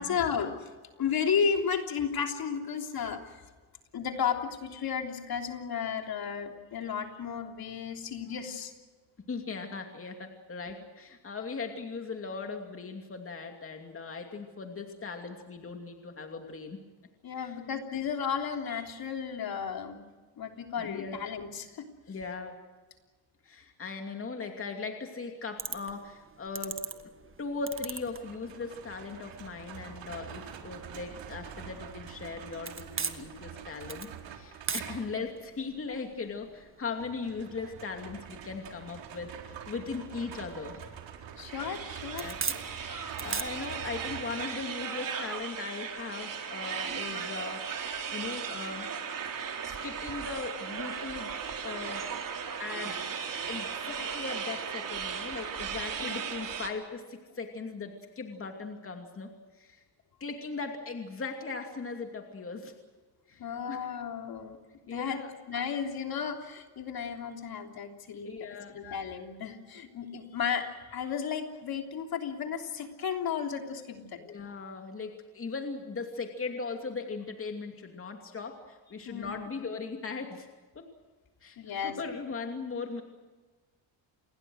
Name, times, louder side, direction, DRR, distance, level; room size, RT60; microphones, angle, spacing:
voice 1, 0.0-3.4 3.9-8.7 17.2-20.1 20.4-21.9 41.4-42.3 56.0-56.1 63.4-64.6 64.9-68.3 68.7-74.2 79.0-79.5 81.6-82.0, left 7 dB, 50° left, 4 dB, 3.3 m, -33 dB
voice 2, 9.3-16.8 17.3-17.6 20.8-21.2 22.1-22.6 23.4-26.9 27.4-40.8 42.2-48.9 49.8-52.1 52.6-53.0 53.5-59.8 60.2-62.7 63.3-63.9 64.9-65.3 68.2-68.9 74.2-80.5 80.7-80.9 81.4-81.6 81.8-83.0, left 4 dB, 30° left, 4 dB, 2.7 m, -39 dB
sound 1, 25.6-43.4, right 6 dB, 25° right, 1.7 m, -43 dB
sound 2, 27.7-35.3 37.0-44.5, right 8 dB, 70° right, 4.2 m, -46 dB
sound 3, 41.5-56.7, right 7 dB, 45° right, 3.5 m, -37 dB
28.5 x 21.0 x 6.4 m, 1.3 s
cardioid pair, 120°, 46 cm